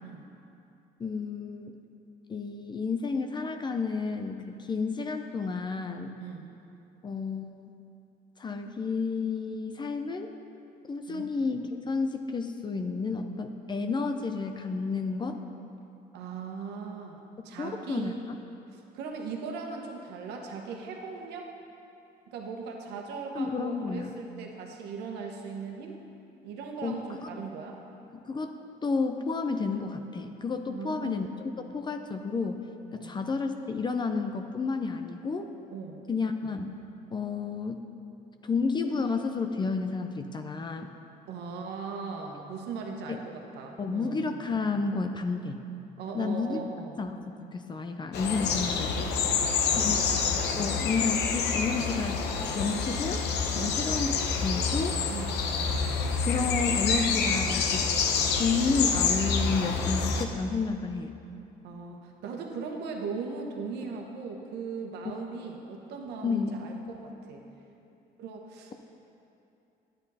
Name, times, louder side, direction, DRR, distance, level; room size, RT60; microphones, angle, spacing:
voice 1, 1.0-1.8 2.3-6.2 7.0-7.7 8.4-10.3 10.9-15.4 17.6-18.4 23.3-24.1 26.8-27.3 28.1-28.5 28.8-32.6 32.9-35.5 36.1-36.8 37.1-37.8 38.4-40.9 43.1-43.2 43.8-45.6 46.1-46.6 47.0-47.2 47.5-48.9 49.8-50.0 50.6-52.3 52.5-53.2 53.5-54.1 54.4-55.0 56.3-57.9 58.4-61.1 66.2-66.6, left 4 dB, 25° left, 6 dB, 0.5 m, -31 dB
voice 2, 6.2-6.5 11.1-11.3 16.1-17.2 17.4-18.2 18.9-21.5 22.3-26.0 26.4-27.8 30.7-31.2 32.9-33.2 35.7-36.0 41.3-44.3 46.0-46.9 49.2-50.3 53.5-53.8 55.1-55.4 61.6-67.4 68.2-68.7, right 5 dB, 80° right, 1 dB, 1.2 m, -39 dB
sound 1, 48.1-60.2, left 5 dB, 80° left, 0.8 m, -27 dB
11.0 x 9.1 x 4.2 m, 2.7 s
cardioid pair, 110°, 17 cm